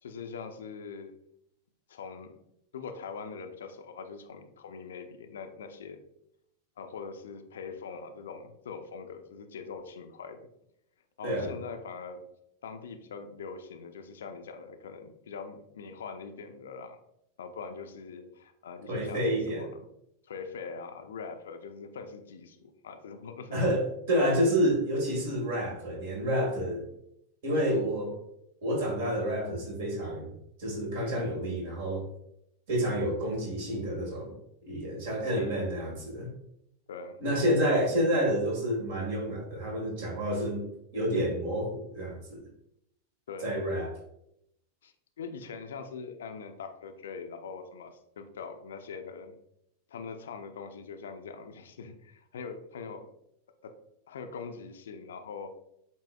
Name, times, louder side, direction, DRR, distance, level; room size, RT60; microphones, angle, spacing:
voice 1, 0.0-1.1 1.9-2.4 2.7-6.0 6.8-10.5 11.2-12.2 12.6-17.0 17.4-19.8 20.2-23.6 35.3-35.8 36.9-37.2 43.3-43.6 44.8-49.4 49.9-53.1 53.6-53.8 54.1-55.5, left 5 dB, 65° left, 6 dB, 0.5 m, -42 dB
voice 2, 18.9-19.7 23.5-23.8 24.1-26.9 27.4-28.2 28.6-30.3 30.6-32.1 32.7-34.3 34.7-36.3 37.2-40.6 40.9-42.4 43.4-43.9, equal, 55° right, 0 dB, 1.7 m, -29 dB
8.1 x 2.7 x 2.3 m, 0.78 s
figure-of-eight pair, 90°, 0 cm